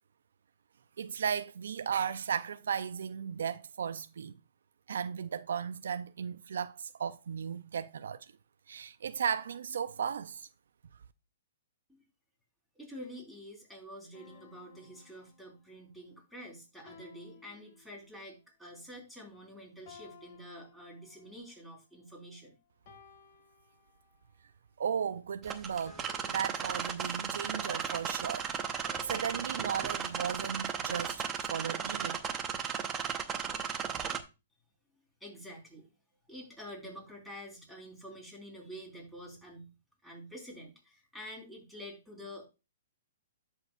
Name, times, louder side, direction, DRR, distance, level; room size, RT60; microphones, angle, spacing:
voice 1, 1.0-4.4 4.9-8.3 8.7-10.5 24.8-32.2, right 7 dB, 75° right, 0.4 m, -36 dB
voice 2, 12.7-22.5 35.2-35.9 36.3-39.7 40.0-42.5, equal, 5° left, 4.1 m, -48 dB
sound 1, 14.1-15.8 16.9-18.4 19.9-21.5 22.9-24.4 25.9-27.6 28.9-29.9, left 6 dB, 50° left, 2.1 m, -58 dB
sound 2, 25.4-34.2, right 7 dB, 20° right, 0.9 m, -35 dB
13.5 x 4.5 x 2.4 m
hypercardioid pair, 135°, 0 cm